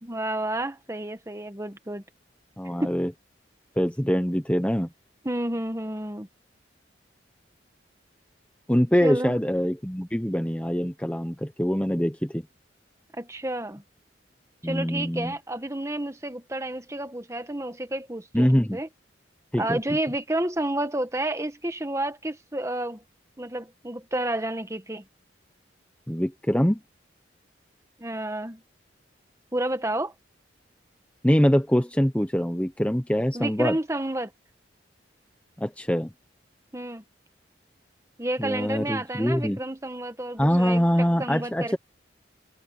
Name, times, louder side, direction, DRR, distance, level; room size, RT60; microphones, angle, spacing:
voice 1, 0.0-2.0 2.8-2.9 5.2-6.3 9.0-9.4 13.1-13.8 14.6-18.9 19.6-23.0 23.4-25.0 28.0-28.6 29.5-30.1 33.3-34.3 36.7-37.0 38.2-41.8, right 1 dB, 15° right, 1.4 m, -30 dB
voice 2, 2.6-3.1 3.8-4.9 8.7-12.4 14.6-15.3 18.3-18.8 19.5-19.8 26.1-26.8 31.2-33.8 35.6-36.1 38.4-39.6 40.4-41.8, equal, 5° left, 1.0 m, -24 dB
head